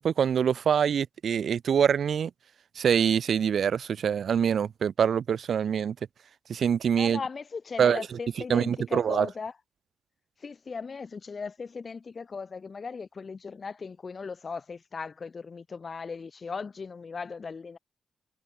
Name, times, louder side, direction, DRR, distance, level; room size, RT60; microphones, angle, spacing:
voice 1, 0.0-2.3 2.8-6.0 6.5-7.2 7.8-8.0 8.5-9.3, right 7 dB, 65° right, 3.8 m, -25 dB
voice 2, 7.0-9.5 10.4-17.8, left 5 dB, 40° left, 3.5 m, -38 dB
cardioid pair, 105°, 0 cm